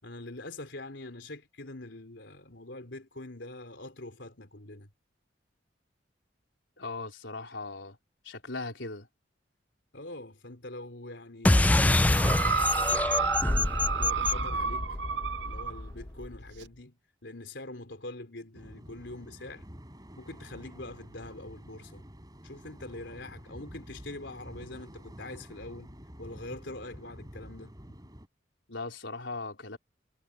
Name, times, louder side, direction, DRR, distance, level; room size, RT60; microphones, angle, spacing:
voice 1, 0.0-4.9 9.9-13.0 13.4-15.0 15.4-17.0 17.2-19.6 20.2-22.0 22.4-25.9 26.2-27.7, left 2 dB, 75° left, 3.9 m, -44 dB
voice 2, 6.8-8.0 8.2-9.1 28.7-29.8, left 3 dB, 90° left, 4.2 m, -38 dB
sound 1, 11.4-16.4, left 2 dB, 10° left, 0.3 m, -26 dB
sound 2, 12.1-15.8 16.6-16.7, right 5 dB, 70° right, 0.7 m, -31 dB
sound 3, 18.5-28.3, equal, 20° right, 6.2 m, -49 dB
head